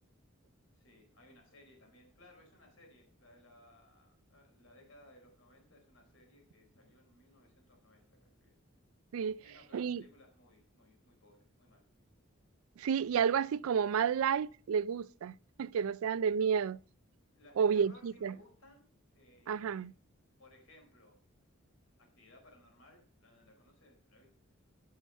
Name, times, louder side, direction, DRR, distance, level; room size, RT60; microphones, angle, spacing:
voice 1, 0.7-8.7 9.4-11.9 17.3-18.8 19.1-19.9 20.4-21.2 22.0-24.3, left 1 dB, 70° left, 4.0 m, -62 dB
voice 2, 9.7-10.0 12.8-16.8 17.6-18.3 19.5-19.9, right 7 dB, 80° right, 0.4 m, -31 dB
12.5 x 5.7 x 5.5 m
head